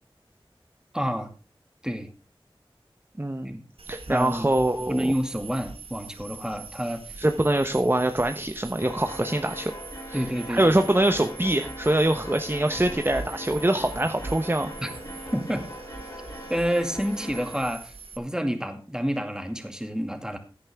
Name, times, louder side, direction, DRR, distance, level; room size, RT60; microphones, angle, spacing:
voice 1, 0.9-1.3 1.8-2.1 3.4-3.6 4.1-4.5 4.9-7.2 10.1-10.7 14.8-14.9 15.3-15.7 16.5-20.4, equal, 5° right, 6 dB, 2.2 m, -29 dB
voice 2, 3.2-3.6 3.9-5.1 7.2-9.7 10.1-10.2 10.5-14.7, right 1 dB, 25° right, 7 dB, 0.9 m, -24 dB
sound 1, 3.8-18.2, right 4 dB, 80° right, 1.4 m, -43 dB
sound 2, 8.8-17.6, equal, 35° left, 3.2 m, -41 dB
15.0 x 9.8 x 3.5 m, 0.32 s
wide cardioid pair, 45°, 9 cm